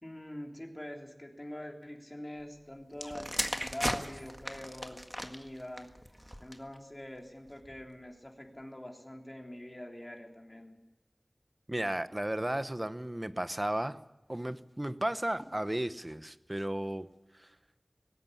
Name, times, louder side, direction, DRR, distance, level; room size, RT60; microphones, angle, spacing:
voice 1, 0.0-5.9 6.4-10.7, left 1 dB, 30° left, 1 dB, 3.5 m, -44 dB
sound 1, 2.9-6.8 7.5-7.8, equal, ahead, 1.8 m, -37 dB
voice 2, 11.7-14.0 14.3-17.1 17.4-17.5, right 1 dB, 25° right, 12 dB, 1.0 m, -34 dB
19.5 x 16.5 x 9.9 m, 1.0 s
wide cardioid pair, 50°, 0 cm